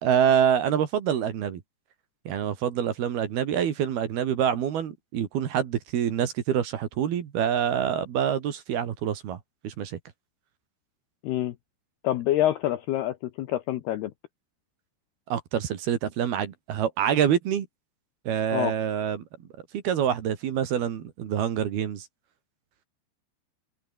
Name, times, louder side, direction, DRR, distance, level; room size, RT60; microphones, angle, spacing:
voice 1, 0.0-1.6 2.3-9.4 9.6-10.0 15.3-17.7 18.3-19.2 19.7-22.1, right 9 dB, 60° right, 3.6 m, -26 dB
voice 2, 11.2-11.5 12.0-14.1 18.5-18.7, left 13 dB, 75° left, 2.5 m, -26 dB
open air
omnidirectional pair, 5.7 m